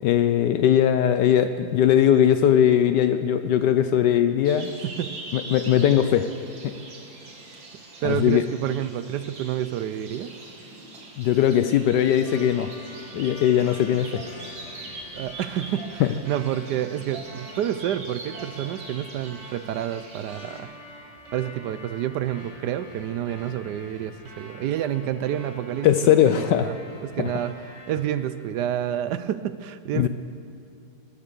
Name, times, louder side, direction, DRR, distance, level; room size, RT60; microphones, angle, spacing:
voice 1, 0.0-4.7 5.3-6.3 6.6-6.7 8.0-8.4 11.2-12.7 13.1-14.2 16.0-16.1 25.8-26.7 27.2-27.3 29.9-30.1, left 10 dB, 75° left, 10 dB, 1.1 m, -20 dB
sound 1, 4.4-20.6, right 2 dB, 90° right, 2.6 m, -42 dB
voice 2, 4.8-5.2 8.0-10.3 15.1-20.7 21.3-25.9 26.2-26.7 27.0-27.5 27.9-30.1, right 11 dB, 75° right, 13 dB, 1.1 m, -29 dB
sound 2, 12.3-28.2, left 1 dB, 40° right, 4.5 m, -46 dB
20.0 x 9.6 x 6.8 m, 2.4 s
omnidirectional pair, 2.0 m